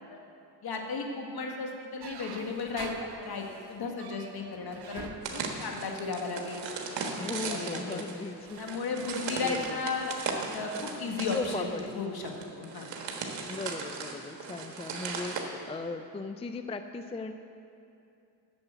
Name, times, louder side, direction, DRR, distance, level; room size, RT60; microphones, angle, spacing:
voice 1, 0.6-6.6 7.2-8.0 8.6-10.1 10.5-12.9, left 4 dB, 60° left, 2 dB, 1.6 m, -35 dB
sound 1, 2.0-6.6 7.3-7.6 8.1-12.0, right 6 dB, 65° right, 0.9 m, -49 dB
sound 2, 5.2-15.4, right 5 dB, 80° right, 1.4 m, -37 dB
voice 2, 7.2-8.6 9.4-9.8 11.3-12.0 13.4-17.3, left 3 dB, 15° left, 8 dB, 0.4 m, -37 dB
9.0 x 7.0 x 8.0 m, 2.6 s
cardioid pair, 75°, 43 cm